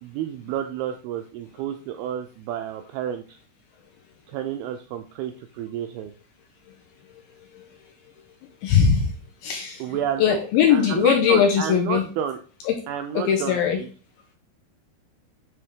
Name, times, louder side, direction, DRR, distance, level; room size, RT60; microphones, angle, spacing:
voice 1, 0.0-3.4 4.3-6.1 9.8-10.4 10.7-12.4 12.9-13.9, right 9 dB, 85° right, 2.2 m, -30 dB
voice 2, 8.6-9.1 9.4-9.8 10.2-12.0 12.7-12.8 13.1-13.8, left 8 dB, 80° left, 2.2 m, -20 dB
9.5 x 3.5 x 3.6 m
omnidirectional pair, 4.9 m